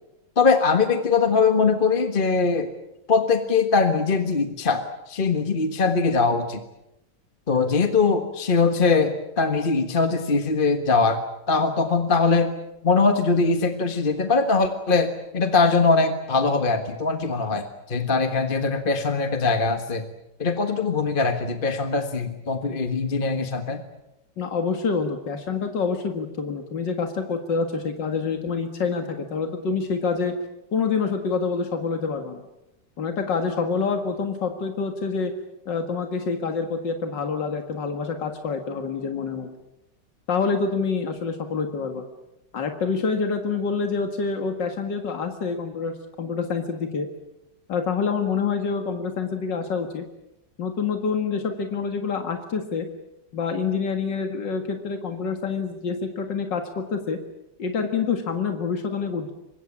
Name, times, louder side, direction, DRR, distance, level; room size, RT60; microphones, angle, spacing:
voice 1, 0.4-2.7 3.1-6.6 7.5-11.2 11.5-12.5 12.8-20.0 20.4-23.8, left 4 dB, 30° left, 7 dB, 1.6 m, -21 dB
voice 2, 24.4-30.3 30.7-32.4 33.0-35.3 35.7-39.5 40.3-42.0 42.5-47.1 47.7-50.1 50.6-52.9 53.3-57.2 57.6-59.3, left 5 dB, 90° left, 6 dB, 2.5 m, -27 dB
25.0 x 22.0 x 8.7 m, 0.88 s
omnidirectional pair, 1.9 m